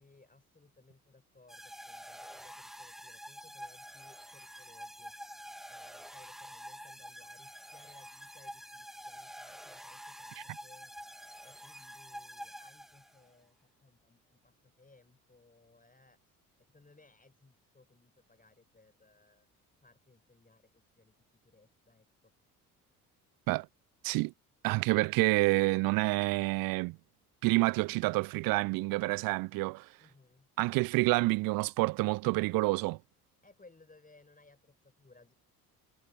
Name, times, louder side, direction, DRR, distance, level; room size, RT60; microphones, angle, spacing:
voice 1, 0.0-5.1 5.7-10.9 11.4-19.5 19.8-21.2 21.4-22.3 30.0-30.5 33.4-35.3, left 3 dB, 20° left, 7.1 m, -63 dB
sound 1, 1.5-13.3, equal, ahead, 1.6 m, -48 dB
voice 2, 24.6-27.0 27.4-29.9 30.6-33.0, right 23 dB, 50° right, 0.5 m, -28 dB
figure-of-eight pair, 50°, 45 cm